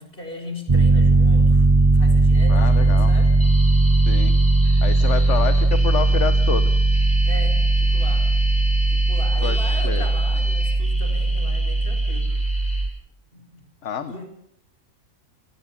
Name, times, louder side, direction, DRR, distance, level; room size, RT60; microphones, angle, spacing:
voice 1, 0.0-1.7 1.9-3.3 7.2-8.3 8.9-12.3 13.3-14.3, left 1 dB, 45° left, 5 dB, 4.7 m, -38 dB
Piano, 0.7-12.9, right 2 dB, 20° right, 1.0 m, -18 dB
sound 1, 2.3-12.8, equal, 5° left, 6.4 m, -34 dB
voice 2, 2.5-3.1 4.1-4.3 4.6-6.7 9.4-9.6 9.8-10.1 13.8-14.1, left 8 dB, 65° left, 11 dB, 1.4 m, -28 dB
29.0 x 19.0 x 5.9 m, 0.73 s
omnidirectional pair, 1.3 m